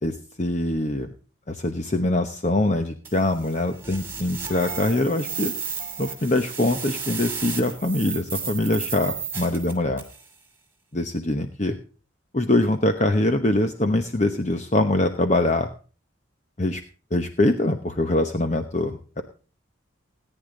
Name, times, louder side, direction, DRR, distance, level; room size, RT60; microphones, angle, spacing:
voice 1, 0.0-1.1 1.5-5.5 6.0-10.0 10.9-11.8 12.3-15.7 16.6-16.8 17.1-19.2, left 1 dB, 35° left, 7 dB, 1.0 m, -23 dB
sound 1, 3.0-10.2, right 6 dB, 10° right, 2.7 m, -33 dB
18.0 x 10.0 x 3.9 m, 0.37 s
head